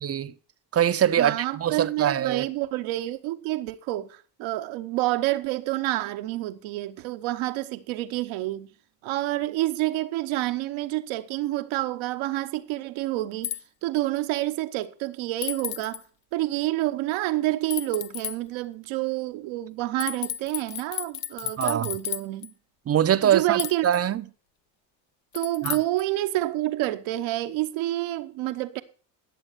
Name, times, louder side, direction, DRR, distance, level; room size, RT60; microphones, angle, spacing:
voice 1, 0.0-0.3 0.7-2.4 21.6-21.9 22.9-24.2 25.6-25.8, right 10 dB, 30° right, 0.7 m, -23 dB
voice 2, 1.2-8.7 9.0-16.0 16.3-22.5 23.2-23.9 25.3-28.8, right 16 dB, 75° right, 1.1 m, -28 dB
sound 1, 13.4-13.6 15.4-16.0 17.7-18.4 20.0-22.5 23.6-24.0 25.3-26.0, left 13 dB, 70° left, 0.9 m, -33 dB
11.5 x 7.1 x 6.7 m
supercardioid pair, 80°, 48 cm